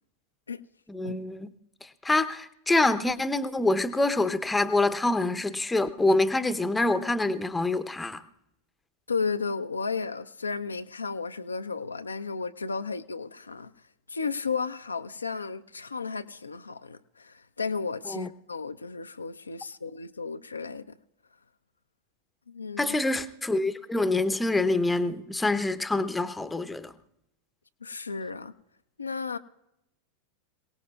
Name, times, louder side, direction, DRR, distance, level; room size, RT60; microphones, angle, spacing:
voice 1, 0.9-1.5 1.8-8.2 18.1-18.3 22.8-26.9, left 2 dB, 10° left, 0.7 m, -26 dB
voice 2, 9.1-13.7 14.1-20.9 22.5-23.0 27.8-28.5 29.0-29.4, left 4 dB, 75° left, 0.5 m, -33 dB
27.5 x 18.5 x 2.3 m
figure-of-eight pair, 90°, 0 cm